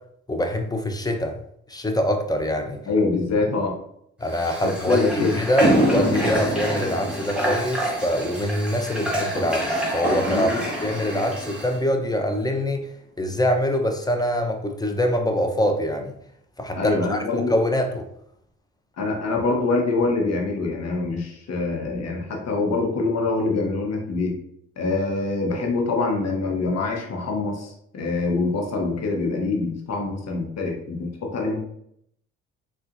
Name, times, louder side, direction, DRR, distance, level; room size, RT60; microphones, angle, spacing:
voice 1, 0.3-1.4 1.7-2.8 4.2-10.5 10.8-12.8 13.2-16.1 16.6-18.1, equal, 10° left, 4 dB, 0.6 m, -24 dB
voice 2, 2.9-3.7 4.6-5.4 10.2-10.6 16.8-17.5 19.0-24.4 24.8-31.6, left 3 dB, 55° left, 1 dB, 1.0 m, -25 dB
Water / Water tap faucet, 4.3-11.8, right 1 dB, 5° right, 1.1 m, -30 dB
sound 1, 5.6-12.1, equal, 30° left, 1.3 m, -27 dB
3.8 x 2.4 x 2.5 m, 0.72 s
supercardioid pair, 55°, 31 cm